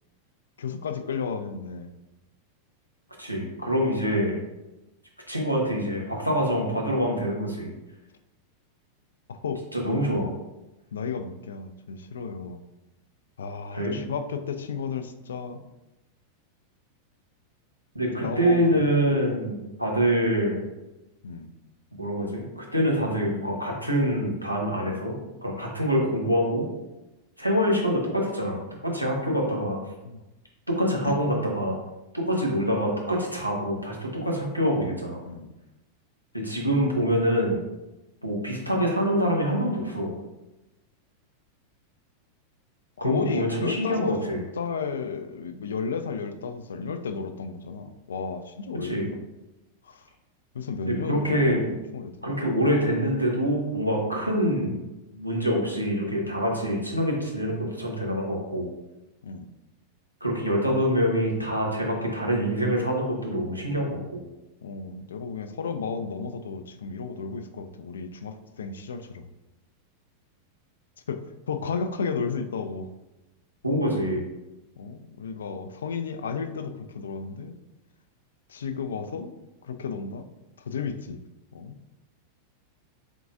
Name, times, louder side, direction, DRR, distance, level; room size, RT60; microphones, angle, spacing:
voice 1, 0.6-1.9 9.3-9.6 10.9-12.6 13.4-15.6 18.2-19.1 21.2-21.5 30.0-30.2 31.0-31.2 35.3-35.5 43.0-44.2 44.5-49.0 49.8-50.0 50.5-52.3 59.2-59.4 64.6-69.2 71.1-72.9 74.8-77.5 78.5-79.3 79.6-80.3 80.6-81.2 81.5-81.8, left 5 dB, 65° left, 9 dB, 0.3 m, -33 dB
voice 2, 3.2-4.4 5.3-7.7 9.7-10.3 13.7-14.0 17.9-20.6 22.0-25.1 25.4-26.7 27.4-28.6 28.8-29.8 30.7-31.8 32.1-35.2 36.3-37.6 38.2-40.1 43.0-44.4 48.8-49.1 50.8-51.6 52.2-54.8 55.1-58.7 60.2-64.2 73.6-74.2, equal, 90° right, -2 dB, 0.8 m, -25 dB
3.8 x 3.6 x 2.5 m, 1.0 s
figure-of-eight pair, 90°, 0 cm